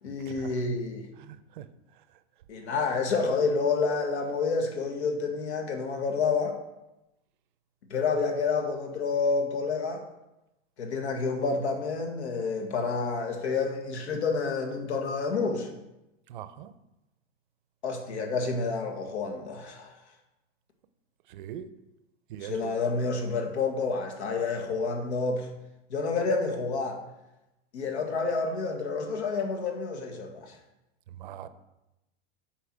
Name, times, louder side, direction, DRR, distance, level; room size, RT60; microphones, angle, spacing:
voice 1, 0.0-1.1 2.5-6.6 7.9-10.0 10.8-15.7 17.8-19.9 22.4-25.5 25.9-27.0 27.7-30.6, left 4 dB, 85° left, 4 dB, 1.9 m, -29 dB
voice 2, 1.2-1.7 16.3-16.7 21.3-21.7 22.3-22.7 31.1-31.5, right 10 dB, 50° right, 13 dB, 0.5 m, -41 dB
8.6 x 4.6 x 6.1 m, 0.93 s
supercardioid pair, 175°, 32 cm